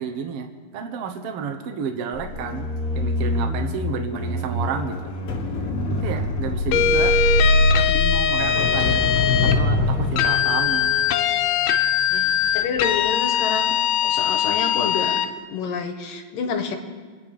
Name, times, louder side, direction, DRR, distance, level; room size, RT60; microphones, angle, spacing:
voice 1, 0.0-5.1 5.9-7.2 7.7-9.0 9.4-11.0, right 6 dB, 70° right, 4 dB, 1.4 m, -31 dB
sound 1, 2.1-12.4 12.8-13.1, left 2 dB, 50° left, 1.8 m, -24 dB
sound 2, 6.7-9.6 10.2-15.3, left 8 dB, 90° left, 2.7 m, -21 dB
voice 2, 12.1-13.7 14.0-15.2 15.5-16.8, left 6 dB, 70° left, 5 dB, 2.5 m, -28 dB
26.0 x 9.3 x 5.1 m, 1.5 s
omnidirectional pair, 4.3 m